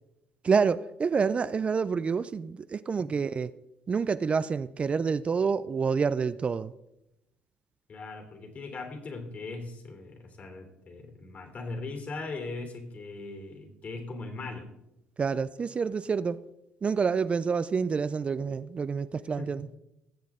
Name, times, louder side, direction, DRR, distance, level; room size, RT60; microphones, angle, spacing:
voice 1, 0.4-3.5 3.9-6.7 15.2-16.4 16.8-19.7, right 5 dB, 35° right, 14 dB, 0.4 m, -28 dB
voice 2, 7.9-14.7 19.4-19.6, left 3 dB, 45° left, 5 dB, 3.1 m, -39 dB
19.0 x 7.5 x 3.7 m, 0.88 s
supercardioid pair, 80°, 4 cm